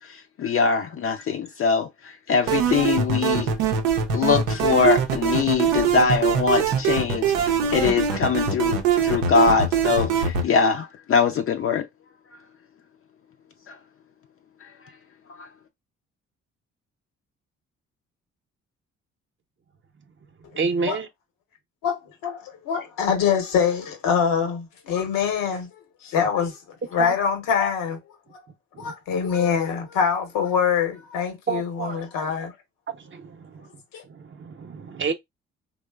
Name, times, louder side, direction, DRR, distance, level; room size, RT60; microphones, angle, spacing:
voice 1, 0.0-3.5 4.1-11.9 13.7-13.8 14.6-14.7 15.4-15.5, left 5 dB, 45° left, 0.4 m, -23 dB
sound 1, 2.5-10.5, right 7 dB, 90° right, 0.5 m, -23 dB
voice 2, 20.5-21.1 27.0-27.1 28.8-28.9 31.5-32.0 32.9-33.5 34.1-35.1, right 5 dB, 35° right, 0.6 m, -29 dB
voice 3, 21.8-25.7 26.0-26.6 26.9-28.0 28.8-32.5 33.9-34.0, left 7 dB, 75° left, 0.8 m, -24 dB
2.9 x 2.0 x 2.2 m
hypercardioid pair, 50°, 33 cm